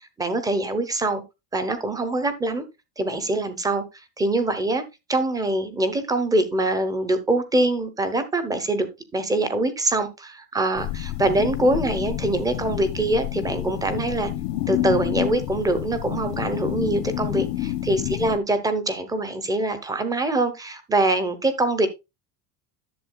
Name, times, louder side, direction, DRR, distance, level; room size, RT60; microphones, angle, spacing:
voice 1, 0.2-1.2 1.5-2.6 3.0-3.8 4.2-4.8 5.1-14.3 14.7-21.9, right 2 dB, 5° right, 0.7 m, -24 dB
sound 1, 10.8-18.4, left 14 dB, 80° left, 1.3 m, -29 dB
11.0 x 7.2 x 2.2 m
cardioid pair, 180°, 49 cm